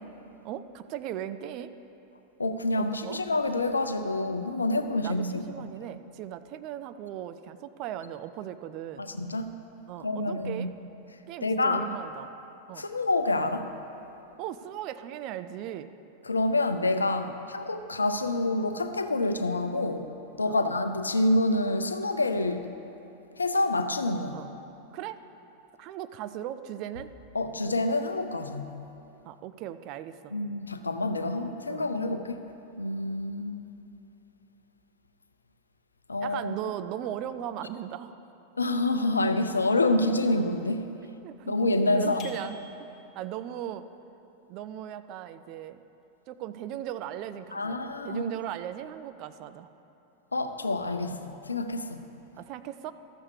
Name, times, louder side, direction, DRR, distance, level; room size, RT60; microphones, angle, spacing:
voice 1, 0.4-1.7 2.8-3.2 5.0-9.0 9.9-10.7 11.3-12.3 12.7-12.9 14.4-15.9 17.2-17.3 20.4-20.8 24.3-24.5 24.9-25.2 25.8-27.1 29.2-30.3 31.7-31.9 36.2-38.1 41.2-42.9 43.2-43.9 44.5-45.8 46.3-49.7 52.3-52.9, right 11 dB, 40° right, 11 dB, 0.4 m, -38 dB
voice 2, 2.4-5.4 9.0-9.5 10.0-10.7 11.4-11.8 12.8-13.7 16.3-20.1 20.4-22.7 23.4-24.4 27.3-28.8 30.3-32.4 32.8-33.6 36.1-36.6 38.6-40.8 41.5-42.3 47.5-48.3 50.3-52.0, left 2 dB, 80° left, 8 dB, 0.5 m, -27 dB
sound 1, 42.2-43.3, left 5 dB, 30° left, 1.2 m, -48 dB
13.0 x 7.1 x 4.8 m, 2.9 s
figure-of-eight pair, 90°, 0 cm